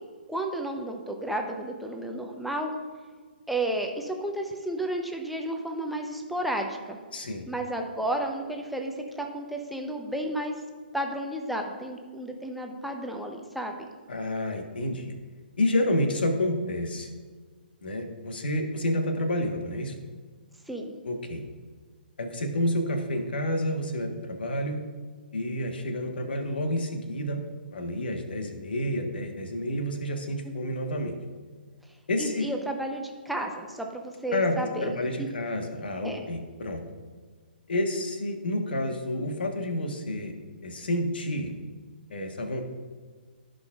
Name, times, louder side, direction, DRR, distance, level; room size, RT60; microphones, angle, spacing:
voice 1, 0.3-2.7 3.5-7.0 7.5-10.5 10.9-13.9 20.7-20.9 32.2-34.9 35.2-35.3 36.0-36.2, right 1 dB, ahead, 2 dB, 0.7 m, -32 dB
voice 2, 7.1-7.5 14.1-15.1 15.6-17.1 17.8-19.9 21.0-21.4 22.2-24.8 25.3-27.4 27.7-31.1 32.1-32.5 34.3-36.8 37.7-40.3 40.6-41.5 42.1-42.6, left 1 dB, 70° left, 4 dB, 1.3 m, -29 dB
15.0 x 5.2 x 2.4 m, 1.5 s
figure-of-eight pair, 135°, 6 cm